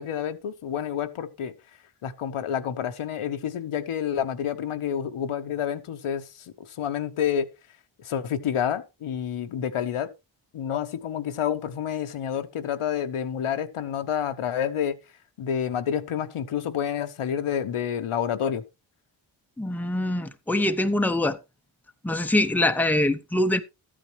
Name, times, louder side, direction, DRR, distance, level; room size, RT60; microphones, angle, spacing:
voice 1, 0.0-1.5 2.0-6.2 6.8-7.5 8.0-10.1 10.5-15.0 15.4-18.6, left 9 dB, 85° left, 1.2 m, -28 dB
voice 2, 19.6-21.4 22.0-23.6, left 1 dB, 5° left, 0.8 m, -24 dB
13.0 x 8.9 x 3.1 m
cardioid pair, 75°, 49 cm